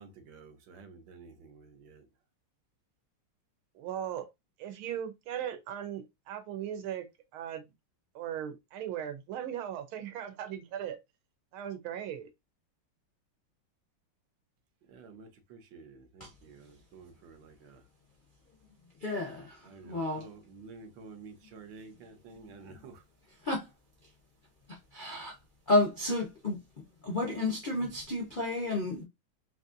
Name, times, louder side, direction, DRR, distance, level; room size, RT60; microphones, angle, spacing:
voice 1, 0.0-2.0 14.9-17.8 19.7-23.0, right 4 dB, 70° right, 1.4 m, -51 dB
voice 2, 3.8-4.3 4.6-7.0 7.3-7.6 8.1-11.0 11.5-12.3, right 10 dB, 90° right, 1.6 m, -38 dB
voice 3, 19.0-19.6 19.8-20.3 23.4-23.7 24.9-25.3 25.7-26.6 27.0-29.0, left 2 dB, 60° left, 0.5 m, -30 dB
4.2 x 2.6 x 2.5 m
omnidirectional pair, 2.3 m